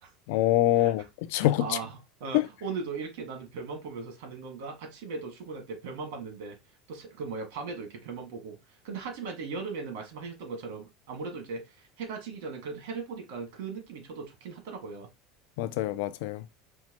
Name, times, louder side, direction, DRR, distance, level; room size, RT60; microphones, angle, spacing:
voice 1, 0.3-1.8 2.3-2.5 15.6-16.4, left 15 dB, 75° left, 0.3 m, -25 dB
voice 2, 1.3-6.6 6.9-15.1, right 4 dB, 80° right, 1.6 m, -38 dB
4.4 x 2.1 x 3.0 m
supercardioid pair, 155°, 0 cm